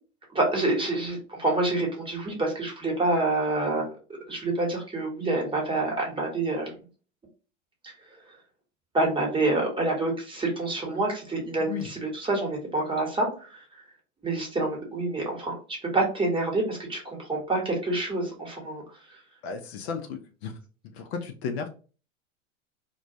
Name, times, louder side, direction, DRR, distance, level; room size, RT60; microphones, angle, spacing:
voice 1, 0.3-3.9 4.3-6.7 7.8-7.9 8.9-13.6 14.2-18.8, right 2 dB, 15° right, 0 dB, 1.0 m, -27 dB
voice 2, 19.4-20.5 20.9-21.7, left 6 dB, 60° left, 5 dB, 0.6 m, -34 dB
2.2 x 2.2 x 2.6 m, 0.36 s
hypercardioid pair, 100°, 38 cm